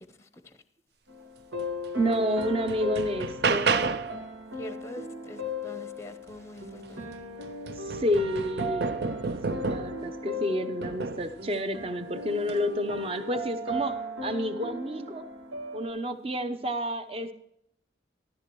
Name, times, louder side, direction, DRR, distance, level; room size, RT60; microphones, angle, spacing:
sound 1, 1.1-15.9, left 1 dB, 90° right, 1.6 m, -37 dB
sound 2, 1.8-1.9 2.4-4.2 6.6-6.7 7.1-10.1 10.8-11.4 12.4-12.6, right 4 dB, 55° right, 0.5 m, -31 dB
voice 1, 1.9-3.7 7.8-9.1 9.5-15.2 15.7-17.3, equal, 30° right, 0.8 m, -30 dB
voice 2, 4.6-7.0, equal, 15° left, 0.7 m, -44 dB
13.5 x 12.5 x 3.1 m
head